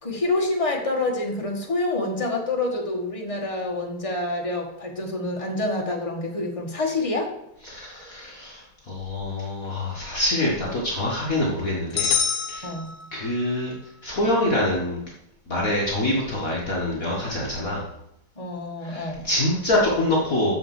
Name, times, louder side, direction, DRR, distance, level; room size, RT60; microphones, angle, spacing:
voice 1, 0.0-7.3 12.6-13.0 18.4-19.2, left 2 dB, 15° left, -1 dB, 1.8 m, -27 dB
voice 2, 7.6-12.7 13.1-15.0 15.5-17.9 18.8-20.5, left 1 dB, 40° left, -4 dB, 1.9 m, -25 dB
sound 1, 12.0-13.5, left 7 dB, 60° left, 1.8 m, -26 dB
7.0 x 6.7 x 7.7 m, 0.82 s
omnidirectional pair, 2.3 m